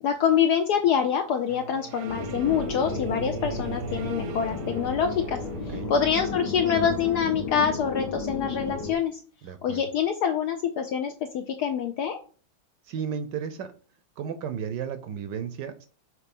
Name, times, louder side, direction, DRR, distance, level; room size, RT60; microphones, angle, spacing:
voice 1, 0.0-5.4 5.7-9.2 9.6-12.2, left 8 dB, 75° left, 6 dB, 0.9 m, -25 dB
sound 1, 1.5-7.2, right 5 dB, 90° right, 1.7 m, -39 dB
sound 2, 2.1-8.9, left 4 dB, 60° left, 1.6 m, -34 dB
voice 2, 3.5-3.8 5.7-5.9 9.4-9.9 12.8-13.7 14.2-15.9, right 7 dB, 70° right, 10 dB, 1.1 m, -34 dB
6.4 x 2.9 x 5.3 m, 0.39 s
omnidirectional pair, 2.2 m